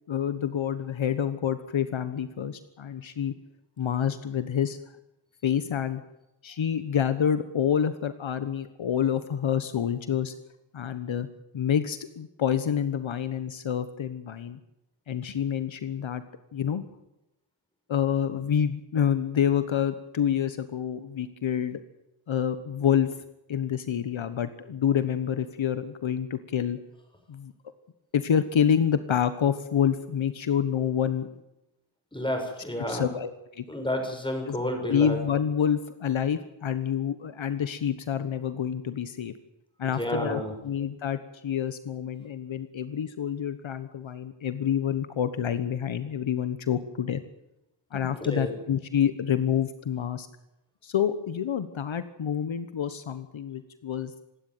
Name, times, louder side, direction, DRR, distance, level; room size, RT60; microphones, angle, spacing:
voice 1, 0.1-3.3 3.8-4.8 5.4-6.0 6.4-10.3 10.7-11.3 11.5-14.6 15.1-16.2 16.5-16.8 17.9-21.8 22.3-23.1 23.5-26.8 27.3-27.5 28.1-31.3 32.9-33.6 34.5-34.6 34.9-39.3 39.8-47.2 47.9-50.3 50.8-54.1, left 8 dB, 70° left, 11 dB, 1.3 m, -27 dB
voice 2, 32.1-33.0 33.7-35.2 39.9-40.5 48.1-48.5, equal, 10° left, 3 dB, 6.8 m, -30 dB
26.5 x 12.0 x 9.3 m, 0.89 s
wide cardioid pair, 100°, 48 cm